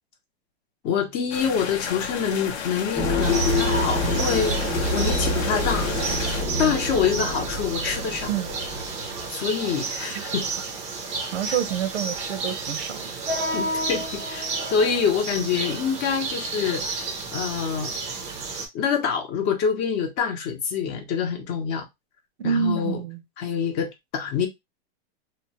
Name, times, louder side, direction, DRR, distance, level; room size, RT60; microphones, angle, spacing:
voice 1, 0.8-4.6 4.9-5.9 6.6-8.3 9.3-10.5 13.5-16.8 17.3-17.9 18.7-21.8 22.4-23.0 23.4-24.5, left 6 dB, 35° left, 0.7 m, -26 dB
sound 1, 1.3-6.4, left 7 dB, 90° left, 0.7 m, -33 dB
sound 2, 3.0-9.3, left 1 dB, 10° left, 0.9 m, -27 dB
sound 3, 3.2-18.7, right 3 dB, 20° right, 0.5 m, -31 dB
voice 2, 11.3-13.1 22.4-23.2, right 8 dB, 90° right, 0.8 m, -27 dB
2.8 x 2.1 x 2.8 m
supercardioid pair, 150°, 32 cm